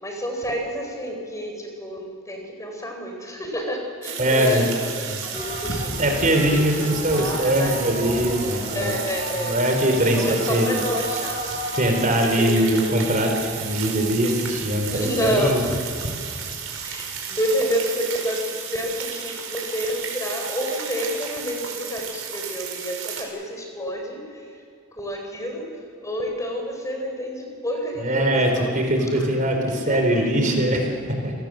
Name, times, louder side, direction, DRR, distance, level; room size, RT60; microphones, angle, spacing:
voice 1, 0.0-5.9 6.5-8.2 8.7-9.5 10.2-11.4 12.2-12.9 14.9-15.9 16.8-24.6 24.9-25.7 26.0-28.7 29.2-29.3 29.7-30.3, equal, 15° left, 2 dB, 4.3 m, -29 dB
sound 1, 4.0-23.2, right 7 dB, 85° right, 4.8 m, -33 dB
voice 2, 4.2-4.6 6.0-9.0 9.4-10.8 11.7-13.3 13.6-15.6 28.0-31.0 31.2-31.3, right 1 dB, 40° right, 3 dB, 4.2 m, -21 dB
sound 2, 5.3-17.2, left 1 dB, 45° left, 4.1 m, -35 dB
29.5 x 18.5 x 7.7 m, 2.2 s
head